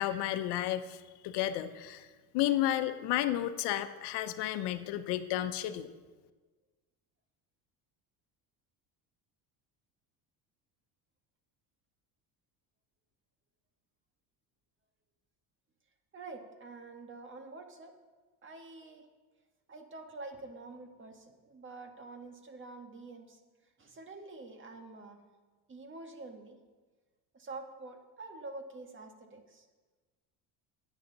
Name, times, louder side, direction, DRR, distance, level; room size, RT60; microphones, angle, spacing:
voice 1, 0.0-2.1 2.3-5.9, left 13 dB, 80° left, 10 dB, 0.9 m, -32 dB
voice 2, 16.1-17.9 18.4-19.1 19.7-23.4 23.8-25.2 25.7-26.6 27.3-29.6, right 3 dB, 30° right, 5 dB, 1.7 m, -47 dB
18.5 x 9.4 x 4.0 m, 1.3 s
cardioid pair, 130°, 40 cm